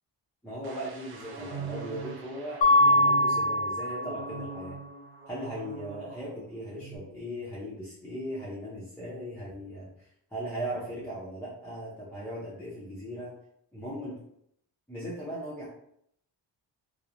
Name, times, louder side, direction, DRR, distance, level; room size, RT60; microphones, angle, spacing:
voice 1, 0.4-4.8 5.3-13.3 13.7-14.2 14.9-15.7, equal, 5° left, -8 dB, 0.6 m, -38 dB
sound 1, 0.6-6.4 6.7-7.0, right 4 dB, 60° right, 0.5 m, -42 dB
Mallet percussion, 2.6-4.4, left 1 dB, 85° left, 0.6 m, -23 dB
2.8 x 2.0 x 2.5 m, 0.72 s
cardioid pair, 115°, 43 cm